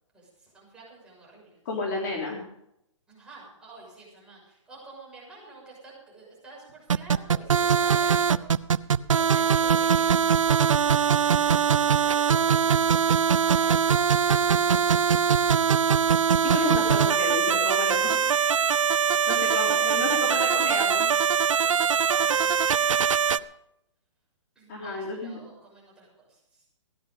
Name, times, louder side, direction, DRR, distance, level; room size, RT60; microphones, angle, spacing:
voice 1, 0.1-1.6 3.1-8.6 9.1-15.7 19.2-20.0 20.3-20.6 21.6-23.4 24.5-26.7, right 3 dB, 5° right, -5 dB, 6.5 m, -48 dB
voice 2, 1.7-2.4 16.4-18.2 19.3-21.1 24.7-25.4, left 3 dB, 35° left, -2 dB, 4.0 m, -31 dB
sound 1, 6.9-23.4, right 7 dB, 80° right, 0.7 m, -22 dB
16.0 x 11.5 x 5.3 m, 0.80 s
hypercardioid pair, 155°, 16 cm